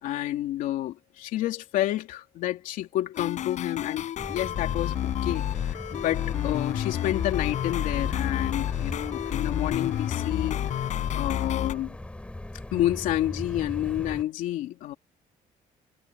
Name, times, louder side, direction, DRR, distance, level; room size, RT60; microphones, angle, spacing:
voice 1, 0.0-10.9 11.1-12.0 12.7-14.9, left 13 dB, 85° left, 3.2 m, -30 dB
sound 1, 3.1-11.7, left 11 dB, 65° left, 7.1 m, -30 dB
sound 2, 4.2-14.2, left 1 dB, 10° left, 4.6 m, -38 dB
cardioid pair, 115°, 13 cm